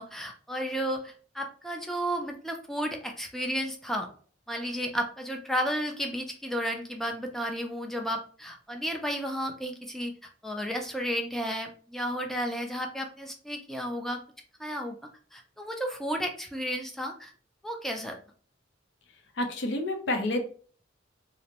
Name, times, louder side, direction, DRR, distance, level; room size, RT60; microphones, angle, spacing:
voice 1, 0.0-4.1 4.5-10.1 10.4-14.2 14.6-15.0 15.3-17.3 17.6-18.2, equal, ahead, 2 dB, 0.4 m, -33 dB
voice 2, 19.4-20.4, left 1 dB, 65° left, 4 dB, 0.5 m, -29 dB
2.5 x 2.0 x 2.8 m, 0.43 s
head